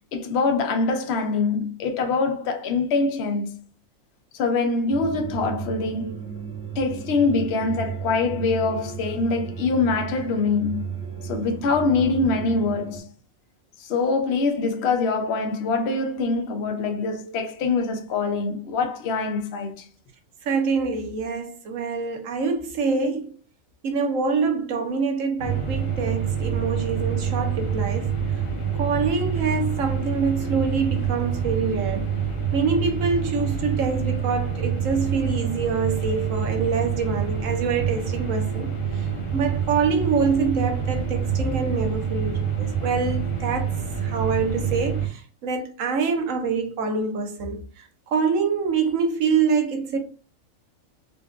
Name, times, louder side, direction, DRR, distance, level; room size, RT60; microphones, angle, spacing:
voice 1, 0.1-3.5 4.3-6.2 6.8-10.9 11.2-13.1 13.8-19.9, left 4 dB, 60° left, 0.9 m, -24 dB
sound 1, 4.9-13.0, right 7 dB, 10° right, 0.8 m, -34 dB
voice 2, 20.4-23.3 23.8-28.1 28.8-32.1 32.5-38.7 39.0-43.7 44.0-47.6 48.1-50.0, right 5 dB, 80° right, 1.1 m, -25 dB
sound 2, 25.4-45.1, right 7 dB, 35° left, 0.6 m, -27 dB
4.3 x 2.5 x 2.3 m
omnidirectional pair, 1.4 m